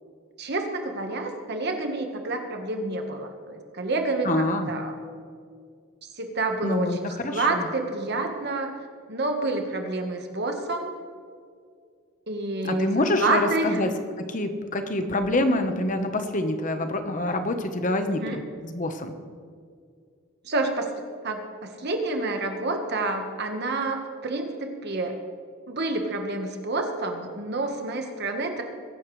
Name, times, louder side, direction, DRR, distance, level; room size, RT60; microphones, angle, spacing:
voice 1, 0.4-4.9 6.2-8.7 9.1-10.9 12.3-13.8 18.2-18.4 20.4-20.9 21.2-25.2 25.7-28.6, right 2 dB, 50° right, 4 dB, 1.4 m, -28 dB
voice 2, 4.2-4.7 6.6-7.7 12.6-13.9 14.3-19.1, left 1 dB, 40° left, 7 dB, 1.1 m, -26 dB
22.0 x 11.5 x 3.3 m, 2.1 s
head